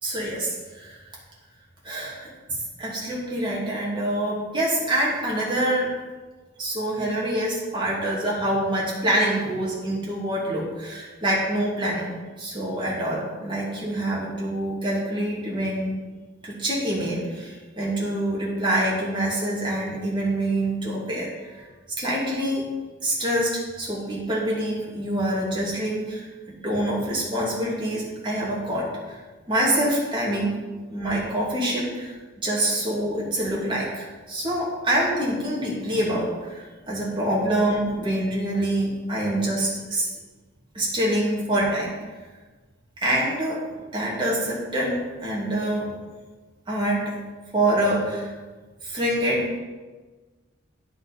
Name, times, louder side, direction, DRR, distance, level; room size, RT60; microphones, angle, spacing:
voice 1, 0.0-1.0 1.8-5.9 6.6-12.1 12.4-15.9 16.4-21.6 22.0-22.6 23.0-26.2 26.6-29.2 29.5-30.5 30.9-40.1 40.7-41.9 43.0-43.6 43.9-45.9 46.7-47.0 47.5-48.3 48.8-49.5, right 1 dB, 25° right, -5 dB, 2.7 m, -26 dB
10.0 x 6.3 x 5.3 m, 1.3 s
head